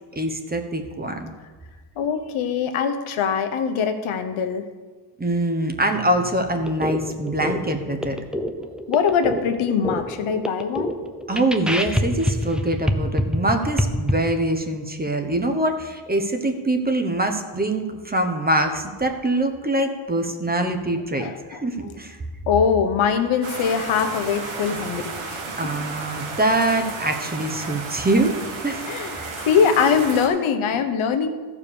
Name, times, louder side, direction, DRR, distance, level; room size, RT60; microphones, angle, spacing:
voice 1, 0.1-1.3 5.2-8.2 11.3-22.2 25.6-28.3 28.6-28.9 29.2-29.4, right 1 dB, 20° right, 5 dB, 1.1 m, -24 dB
voice 2, 2.0-4.6 8.9-11.0 21.2-21.4 22.5-25.4 28.9-29.1 29.5-31.3, left 6 dB, 80° left, 7 dB, 1.1 m, -22 dB
sound 1, 6.7-14.1, equal, ahead, 0.7 m, -26 dB
sound 2, 23.4-30.3, right 3 dB, 75° right, 1.9 m, -33 dB
14.0 x 4.8 x 6.9 m, 1.4 s
cardioid pair, 100°, 48 cm